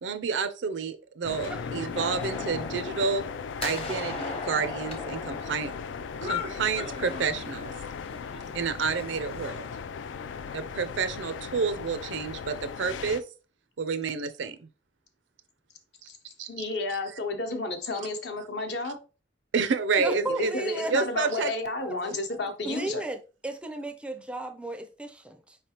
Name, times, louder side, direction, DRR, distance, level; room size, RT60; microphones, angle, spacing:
voice 1, 0.0-3.2 3.6-5.7 6.2-7.7 8.5-9.7 10.5-13.2 13.8-14.7 16.4-16.6 19.5-20.5 20.9-21.5, right 5 dB, 80° right, 0.5 m, -29 dB
sound 1, 1.2-13.2, left 6 dB, 85° left, 0.4 m, -37 dB
sound 2, 1.9-7.7 8.1-9.5, left 4 dB, 35° left, 0.8 m, -38 dB
voice 2, 16.5-19.0 20.1-23.0, left 2 dB, 65° left, 0.8 m, -31 dB
voice 3, 20.0-20.9 21.3-21.4 21.8-21.9 22.6-25.6, right 2 dB, 5° right, 0.4 m, -35 dB
4.8 x 3.3 x 2.9 m
head